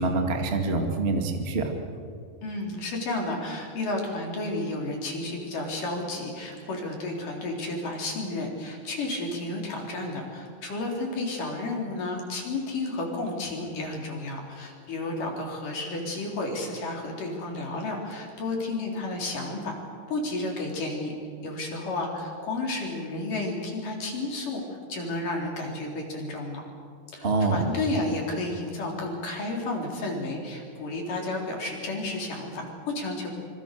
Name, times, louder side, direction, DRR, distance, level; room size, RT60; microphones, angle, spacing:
voice 1, 0.0-1.7 27.2-27.7, right 3 dB, 35° right, 3 dB, 0.9 m, -25 dB
voice 2, 2.4-19.8 20.1-21.1 21.4-26.6 27.1-33.3, left 2 dB, 45° left, 0 dB, 5.1 m, -32 dB
26.5 x 25.5 x 6.8 m, 2.2 s
omnidirectional pair, 5.3 m